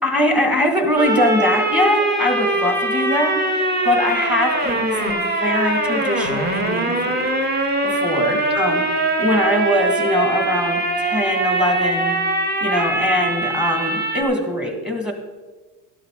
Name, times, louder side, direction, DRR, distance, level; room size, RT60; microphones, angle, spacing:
voice 1, 0.0-7.3 7.8-8.8 9.2-12.2 12.6-15.1, left 1 dB, 5° right, 4 dB, 1.5 m, -22 dB
sound 1, 1.0-14.2, right 2 dB, 25° right, 1.3 m, -22 dB
12.5 x 12.0 x 3.6 m, 1.3 s
cardioid pair, 155°, 40 cm